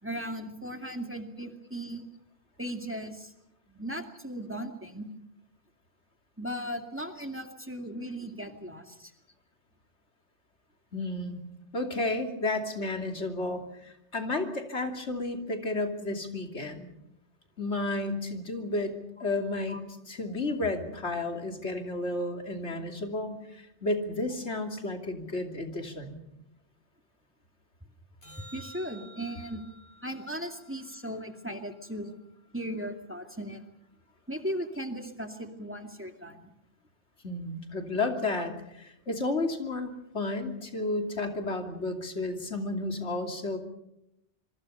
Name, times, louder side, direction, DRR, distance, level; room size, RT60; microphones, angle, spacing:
voice 1, 0.0-2.1 2.6-3.3 3.7-5.1 6.4-9.1 19.7-19.8 28.5-29.6 30.0-32.1 32.5-33.6 34.3-36.5, equal, 10° right, 4 dB, 2.3 m, -37 dB
voice 2, 10.9-11.4 11.7-16.9 17.6-18.9 19.2-26.2 37.2-43.6, left 2 dB, 85° left, 4 dB, 3.1 m, -32 dB
sound 1, 28.2-32.7 39.2-39.3, right 1 dB, 50° left, 5.4 m, -54 dB
26.5 x 24.0 x 5.6 m, 0.83 s
omnidirectional pair, 1.1 m